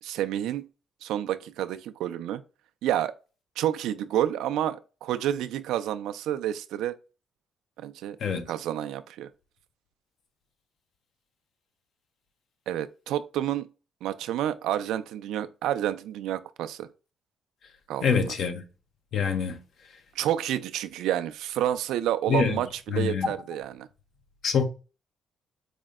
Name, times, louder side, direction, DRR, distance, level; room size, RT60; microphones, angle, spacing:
voice 1, 0.0-0.7 1.0-2.4 2.8-3.1 3.6-6.9 7.8-8.2 8.5-9.3 12.7-13.7 14.0-16.9 17.9-18.3 20.2-23.9, right 11 dB, 90° right, 0.3 m, -29 dB
voice 2, 18.0-18.6 19.1-19.6 22.3-22.5 22.9-23.3 24.4-24.6, left 6 dB, 65° left, 0.7 m, -25 dB
4.9 x 2.1 x 3.5 m
cardioid pair, 90°, 0 cm